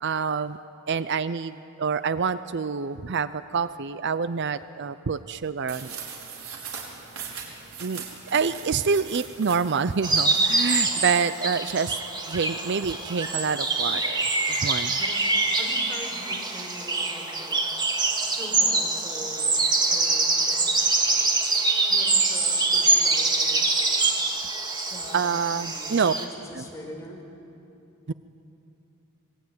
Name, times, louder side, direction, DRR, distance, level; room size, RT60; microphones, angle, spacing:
voice 1, 0.0-0.6 0.9-6.0 7.8-8.0 8.3-12.0 12.3-15.0 25.1-26.1 26.6-26.7 28.1-28.2, right 5 dB, 55° right, 14 dB, 0.6 m, -27 dB
sound 1, 5.7-10.7, right 6 dB, 85° right, 4.9 m, -40 dB
sound 2, 10.0-26.3, right 3 dB, 20° right, 2.4 m, -24 dB
voice 2, 15.5-17.6 18.2-20.7 21.9-23.7 24.9-27.2, left 1 dB, 15° left, 0 dB, 5.1 m, -42 dB
26.0 x 22.0 x 9.4 m, 2.7 s
head